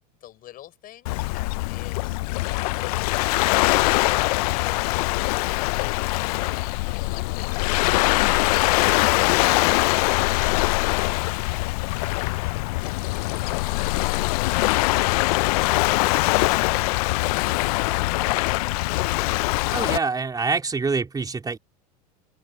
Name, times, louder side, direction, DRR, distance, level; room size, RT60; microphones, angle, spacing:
voice 1, 0.2-3.7 4.6-10.6 10.9-11.8 12.8-14.3 16.0-19.4, left 13 dB, 45° left, 6.0 m, -45 dB
Waves surf, 1.1-20.0, left 23 dB, 70° left, 0.5 m, -22 dB
voice 2, 19.7-21.6, right 4 dB, 20° right, 4.0 m, -25 dB
open air
hypercardioid pair, 95°, 20 cm